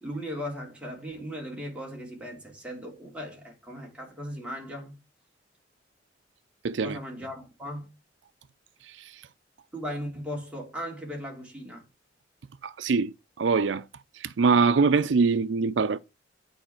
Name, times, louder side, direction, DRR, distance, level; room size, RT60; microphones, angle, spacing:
voice 1, 0.0-4.9 6.8-7.9 9.7-11.8, equal, 5° right, 3.1 m, -37 dB
voice 2, 6.6-7.0 8.9-9.1 12.6-13.8 14.1-16.0, right 4 dB, 75° right, 0.5 m, -24 dB
9.1 x 4.7 x 5.8 m
head